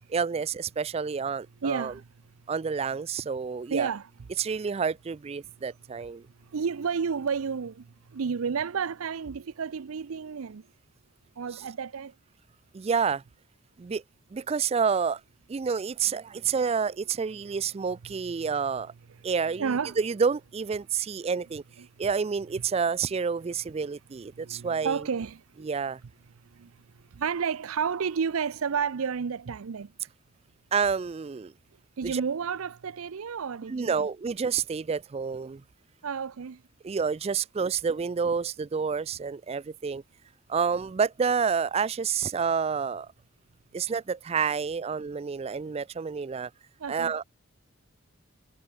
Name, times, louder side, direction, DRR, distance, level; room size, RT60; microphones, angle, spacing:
voice 1, 0.1-1.9 2.5-3.9 4.4-6.2 12.7-13.2 13.8-14.0 14.3-15.2 15.5-18.9 19.2-21.6 22.0-25.0 25.6-26.0 30.7-31.5 32.1-32.2 33.7-35.6 36.8-40.0 40.5-43.1 43.7-46.5 46.9-47.2, right 6 dB, 30° right, 0.3 m, -29 dB
voice 2, 1.6-2.1 3.7-4.3 5.4-5.6 6.2-10.7 11.4-12.2 16.4-16.5 19.6-20.0 21.8-22.1 23.8-23.9 24.3-25.7 26.4-30.0 32.0-34.1 36.0-36.6 46.8-47.1, right 6 dB, 80° right, 0.5 m, -32 dB
head